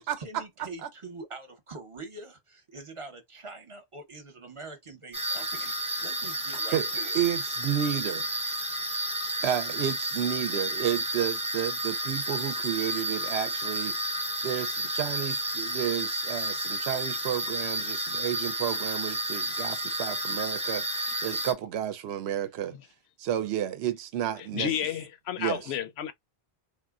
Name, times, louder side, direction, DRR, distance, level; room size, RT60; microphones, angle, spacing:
voice 1, 0.2-7.2, right 3 dB, 35° right, 0.8 m, -44 dB
sound 1, 5.1-21.5, right 1 dB, 10° right, 0.3 m, -31 dB
voice 2, 7.1-8.3 9.4-14.0 14.4-22.8 23.2-24.7 25.4-25.7, right 10 dB, 85° right, 0.8 m, -31 dB
voice 3, 24.5-26.1, left 9 dB, 80° left, 0.8 m, -31 dB
3.5 x 2.2 x 2.3 m
omnidirectional pair, 1.1 m